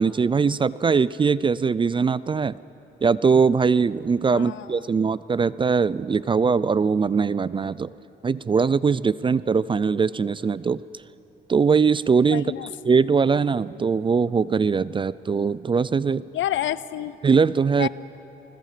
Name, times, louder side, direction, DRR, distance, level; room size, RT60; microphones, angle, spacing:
voice 1, 0.0-2.5 3.0-7.9 8.2-10.8 11.5-12.5 12.9-16.2 17.2-17.9, right 5 dB, 25° right, 19 dB, 0.4 m, -21 dB
voice 2, 4.3-4.8 12.3-12.7 16.3-17.2 17.8-17.9, left 12 dB, 75° left, 17 dB, 0.6 m, -28 dB
28.5 x 21.0 x 5.0 m, 3.0 s
cardioid pair, 90°, 20 cm